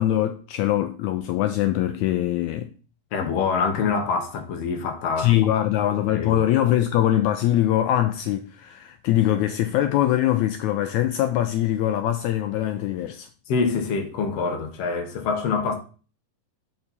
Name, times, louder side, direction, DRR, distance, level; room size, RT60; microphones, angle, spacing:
voice 1, 0.0-2.7 5.2-13.3, left 12 dB, 85° left, 1.6 m, -22 dB
voice 2, 3.1-5.5 6.1-6.4 13.5-15.8, left 5 dB, 60° left, 1.8 m, -25 dB
6.7 x 5.7 x 4.1 m
omnidirectional pair, 3.8 m